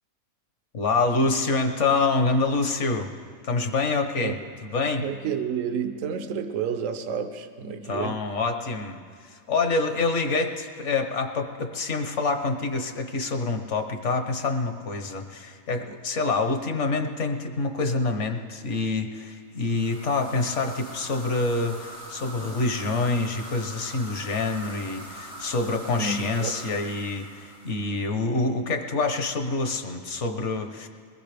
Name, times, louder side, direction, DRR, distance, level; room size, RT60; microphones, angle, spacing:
voice 1, 0.7-3.1 3.4-4.4 4.6-5.0 7.9-30.9, left 3 dB, 60° left, 5 dB, 1.4 m, -26 dB
voice 2, 5.0-8.2 26.0-26.5, right 6 dB, 70° right, 8 dB, 1.2 m, -30 dB
sound 1, 19.6-28.2, right 1 dB, 80° left, 3.3 m, -42 dB
21.5 x 19.5 x 3.4 m, 2.2 s
omnidirectional pair, 1.5 m